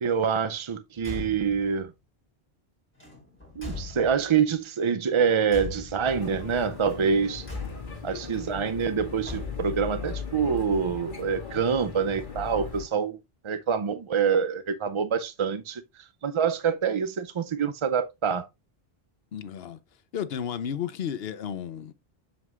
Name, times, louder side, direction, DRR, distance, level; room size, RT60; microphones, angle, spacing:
voice 1, 0.0-1.9 3.6-7.5 8.0-13.2 13.4-15.8 16.2-18.5, right 6 dB, 45° right, 0.4 m, -26 dB
Car / Truck / Slam, 1.0-1.7 3.0-4.4 5.5-6.3 7.4-8.1 9.2-9.9, left 3 dB, 10° left, 4.2 m, -39 dB
sound 1, 6.1-12.8, left 6 dB, 55° left, 1.8 m, -38 dB
voice 2, 19.3-19.8 20.1-21.9, left 8 dB, 75° left, 1.0 m, -33 dB
7.8 x 7.4 x 2.4 m
omnidirectional pair, 1.0 m